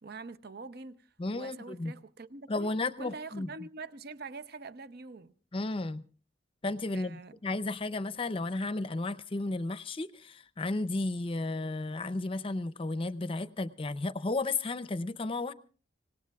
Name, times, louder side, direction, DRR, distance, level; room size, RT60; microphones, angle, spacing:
voice 1, 0.0-2.7 3.0-5.3 6.9-7.4, right 3 dB, 55° right, 0.7 m, -45 dB
voice 2, 1.2-1.9 2.5-3.5 5.5-6.1 6.6-15.5, left 2 dB, 30° left, 0.6 m, -33 dB
26.0 x 18.5 x 2.4 m
head